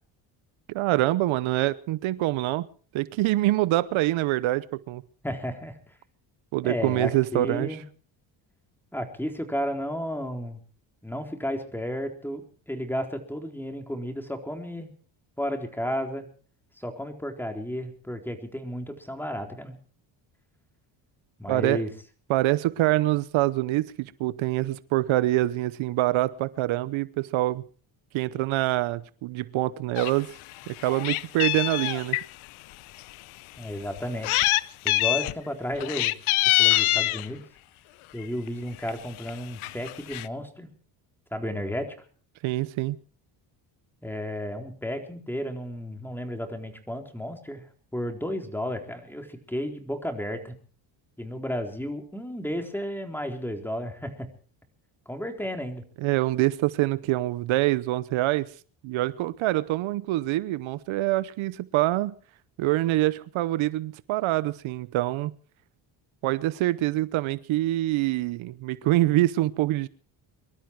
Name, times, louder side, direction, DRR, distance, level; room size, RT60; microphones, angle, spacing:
voice 1, 0.7-2.7 2.9-5.0 6.5-7.7 21.5-21.8 22.3-27.6 28.1-30.3 30.7-32.2 42.4-43.0 56.0-58.5 58.8-62.1 62.6-65.3 66.2-69.9, right 16 dB, 75° right, 0.9 m, -25 dB
voice 2, 5.2-5.8 6.6-7.8 8.9-10.6 11.0-14.9 15.4-16.3 16.8-19.8 21.4-21.9 33.6-36.1 36.4-37.4 38.1-40.7 41.3-42.1 44.0-47.6 47.9-50.6 51.2-54.3 55.1-55.8, equal, 5° left, 4.0 m, -33 dB
Meow, 30.0-30.1 30.5-32.3 33.0-33.1 34.0-34.6 34.9-35.3 35.8-37.3 38.2-38.5 38.9-39.0 39.2-39.3 39.6-40.3, left 19 dB, 85° left, 0.8 m, -24 dB
24.0 x 12.5 x 4.7 m
cardioid pair, 80°, 48 cm